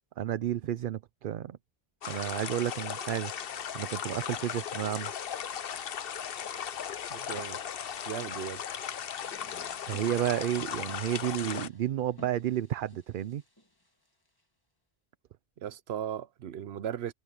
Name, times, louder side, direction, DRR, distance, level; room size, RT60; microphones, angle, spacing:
voice 1, 0.2-1.6 2.1-3.3 3.7-5.1 9.9-13.4, right 11 dB, 60° right, 0.7 m, -31 dB
sound 1, 2.0-11.7, left 8 dB, 70° left, 1.0 m, -37 dB
voice 2, 7.1-7.6 8.1-8.6 15.6-17.1, right 10 dB, 85° right, 1.0 m, -37 dB
sound 2, 8.3-14.4, equal, 20° left, 1.9 m, -57 dB
omnidirectional pair, 1.0 m